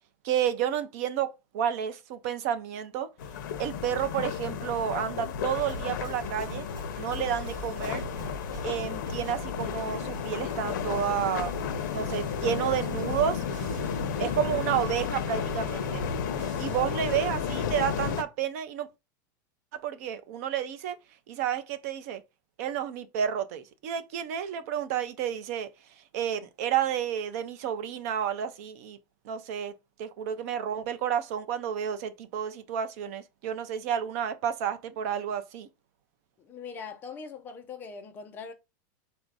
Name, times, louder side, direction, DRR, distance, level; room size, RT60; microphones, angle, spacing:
voice 1, 0.2-3.1 3.6-6.7 7.0-8.0 8.6-11.5 11.9-13.4 14.2-16.0 16.6-18.9 19.7-21.0 21.3-22.2 22.6-25.7 26.1-29.0 29.2-29.7 30.0-35.7, right 9 dB, 50° right, 0.6 m, -30 dB
sound 1, 3.2-18.2, left 7 dB, 70° left, 0.7 m, -33 dB
sound 2, 5.6-17.3, right 3 dB, 80° right, 1.0 m, -43 dB
voice 2, 36.4-38.5, left 5 dB, 20° left, 0.4 m, -41 dB
4.1 x 2.6 x 4.6 m
supercardioid pair, 175°, 10 cm